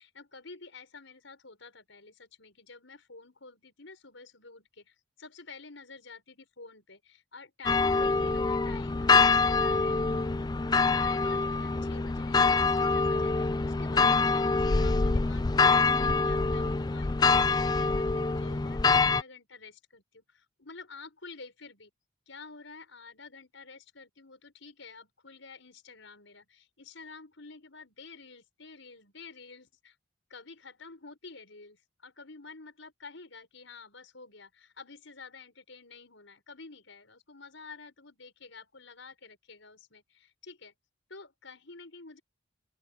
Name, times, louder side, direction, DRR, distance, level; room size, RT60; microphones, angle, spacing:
voice 1, 0.0-10.0 10.9-21.9 22.3-30.0 30.3-40.7 41.1-42.2, left 4 dB, 75° left, 5.3 m, -49 dB
sound 1, 7.7-19.2, left 4 dB, 20° left, 0.4 m, -25 dB
open air
head